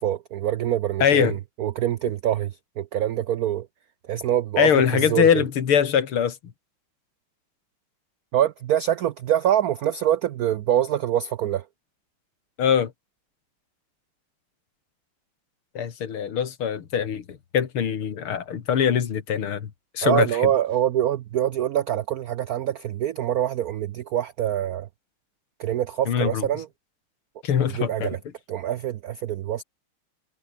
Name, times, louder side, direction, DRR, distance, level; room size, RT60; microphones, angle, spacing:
voice 1, 0.0-3.7 4.0-5.3 8.3-11.7 20.0-24.9 25.6-26.7 27.8-28.2 28.5-29.6, right 11 dB, 85° right, 0.8 m, -25 dB
voice 2, 1.0-1.4 4.6-6.4 12.6-12.9 15.7-20.3 26.1-26.5 27.4-28.1, left 8 dB, 80° left, 2.7 m, -22 dB
omnidirectional pair, 2.3 m